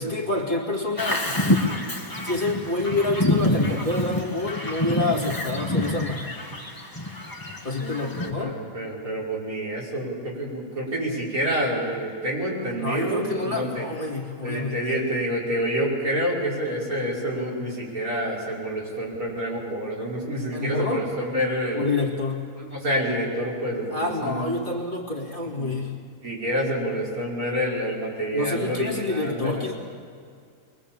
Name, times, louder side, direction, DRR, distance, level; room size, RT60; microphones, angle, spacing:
voice 1, 0.0-1.4 2.2-6.3 7.6-8.6 12.8-15.0 20.5-21.0 21.7-22.4 23.9-26.0 28.3-29.7, left 2 dB, 30° left, -2 dB, 2.6 m, -28 dB
Bird vocalization bird call bird song, 1.0-8.3, left 1 dB, 15° left, 1.9 m, -27 dB
voice 2, 7.7-13.8 14.4-21.9 22.6-24.7 25.6-25.7 26.2-29.7, equal, 65° right, -5 dB, 5.9 m, -28 dB
23.5 x 22.0 x 7.3 m, 2.3 s
omnidirectional pair, 1.7 m